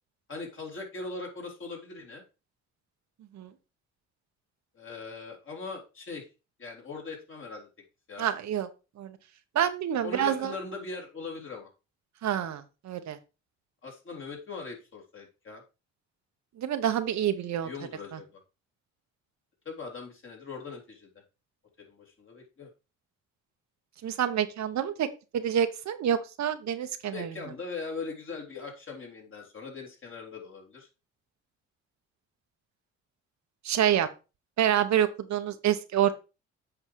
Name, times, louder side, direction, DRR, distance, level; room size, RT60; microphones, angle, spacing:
voice 1, 0.3-2.2 4.7-6.3 6.6-7.7 8.1-8.3 10.0-11.7 13.8-15.6 17.6-18.4 19.7-21.1 21.9-22.7 27.1-30.9, left 4 dB, 40° left, 0 dB, 3.5 m, -40 dB
voice 2, 8.2-8.7 9.0-9.2 9.5-10.5 12.2-13.2 16.6-17.7 24.0-25.1 25.3-27.3 33.6-34.1 34.6-36.2, right 10 dB, 65° right, 9 dB, 1.0 m, -27 dB
7.9 x 4.8 x 4.6 m, 0.30 s
cardioid pair, 90°, 30 cm